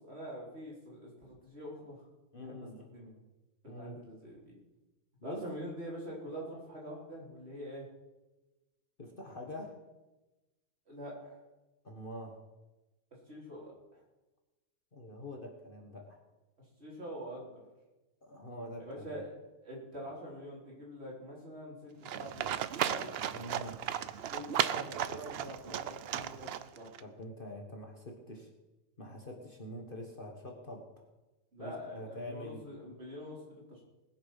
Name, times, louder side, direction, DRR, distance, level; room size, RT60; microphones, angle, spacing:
voice 1, 0.1-2.0 2.4-3.2 3.6-4.5 5.2-7.9 10.9-11.4 13.3-14.0 16.8-17.6 18.8-19.3 19.6-23.1 24.3-27.0 31.5-33.9, equal, 45° right, -4 dB, 4.1 m, -45 dB
voice 2, 2.3-2.8 3.7-4.0 5.2-5.4 9.0-9.8 11.8-12.4 14.9-16.2 18.2-19.2 23.3-23.8 27.0-28.5 29.0-31.1 31.6-32.6, left 1 dB, 35° left, 2 dB, 1.6 m, -45 dB
Livestock farm animals working animals, 22.0-27.0, right 10 dB, 65° right, 0.6 m, -35 dB
20.0 x 7.1 x 5.8 m, 1.1 s
omnidirectional pair, 1.6 m